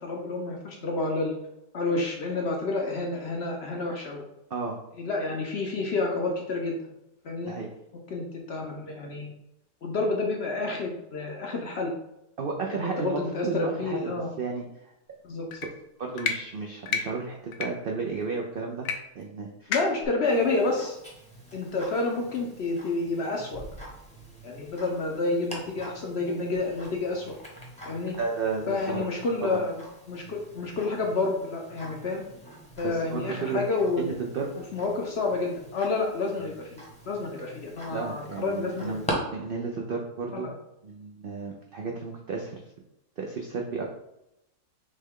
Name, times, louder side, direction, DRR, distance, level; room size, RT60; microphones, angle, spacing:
voice 1, 0.0-1.3 1.7-4.2 5.0-6.8 7.2-7.5 8.1-9.3 9.8-11.9 12.7-14.3 15.2-15.6 19.7-21.0 21.5-23.6 24.4-27.3 27.9-28.1 28.7-29.7 30.1-32.2 32.8-34.0 34.7-39.0 40.3-40.5, left 3 dB, 60° left, 1 dB, 0.7 m, -29 dB
voice 2, 12.4-14.9 16.0-18.9 19.1-19.7 28.2-29.0 29.4-29.6 32.8-33.6 34.0-34.5 37.9-40.5 40.8-42.6 43.2-43.8, right 4 dB, 75° right, 0 dB, 0.5 m, -33 dB
sound 1, 15.5-15.7 16.2-16.4 16.9-17.0 17.5-17.7 18.9-19.0 19.2-19.3 19.7-20.1, left 6 dB, 80° left, 1.1 m, -29 dB
Tick-tock, 20.2-39.1, equal, 5° left, 0.8 m, -44 dB
6.5 x 2.2 x 3.6 m, 0.87 s
omnidirectional pair, 1.6 m